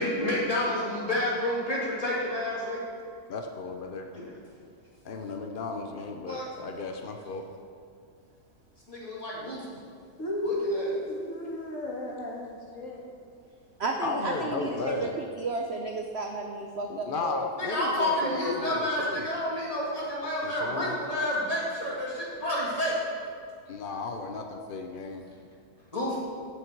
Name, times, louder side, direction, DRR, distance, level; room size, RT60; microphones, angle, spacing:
voice 1, 0.0-2.9 4.1-4.2 6.3-6.4 8.9-9.7 10.4-11.0 17.6-22.9 25.9-26.2, left 1 dB, 20° left, -6 dB, 2.6 m, -29 dB
voice 2, 3.3-4.1 5.0-7.4 14.0-15.2 16.9-19.3 20.4-21.0 23.7-25.2, left 3 dB, 80° left, 4 dB, 0.4 m, -34 dB
voice 3, 10.2-13.0, left 1 dB, 50° left, -2 dB, 2.0 m, -33 dB
voice 4, 13.8-15.1 15.4-17.5, right 3 dB, 55° right, 2 dB, 0.7 m, -33 dB
15.0 x 6.4 x 4.6 m, 2.2 s
omnidirectional pair, 1.9 m